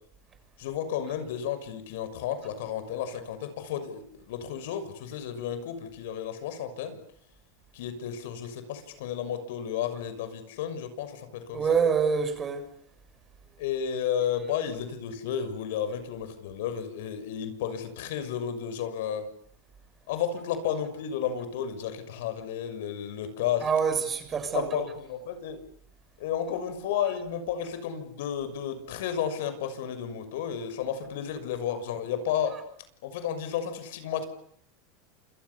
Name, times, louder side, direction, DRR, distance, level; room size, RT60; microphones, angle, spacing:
voice 1, 0.6-7.0 7.7-11.8 13.6-19.3 20.1-23.7 24.5-25.6 26.2-32.6 33.0-34.2, left 9 dB, 75° left, 6.5 m, -32 dB
voice 2, 11.5-12.7 23.6-24.8, right 6 dB, 25° right, 7.3 m, -26 dB
29.0 x 28.0 x 7.1 m
supercardioid pair, 130°, 0 cm